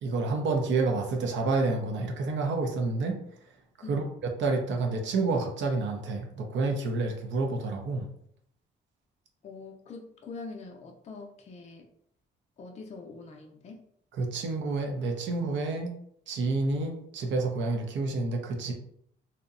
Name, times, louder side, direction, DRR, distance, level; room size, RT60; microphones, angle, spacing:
voice 1, 0.0-3.2 3.9-8.1 14.2-15.9 16.3-18.7, right 3 dB, 70° right, 3 dB, 0.5 m, -29 dB
voice 2, 3.8-4.1 9.4-11.9 12.6-13.9, left 4 dB, 35° left, 1 dB, 0.4 m, -44 dB
2.6 x 2.1 x 2.4 m, 0.69 s
cardioid pair, 90°, 20 cm